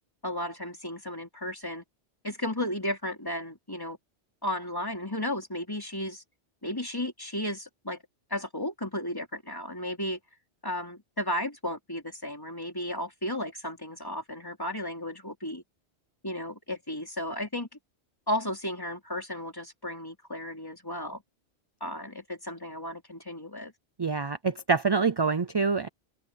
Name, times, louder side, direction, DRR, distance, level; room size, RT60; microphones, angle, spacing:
voice 1, 0.2-1.8 2.2-4.0 4.4-6.2 6.6-8.0 8.3-10.2 10.6-15.6 16.2-17.7 18.3-21.2 21.8-23.7, left 1 dB, 20° left, 3.5 m, -34 dB
voice 2, 24.0-25.9, right 5 dB, 30° right, 0.5 m, -26 dB
omnidirectional pair, 1.1 m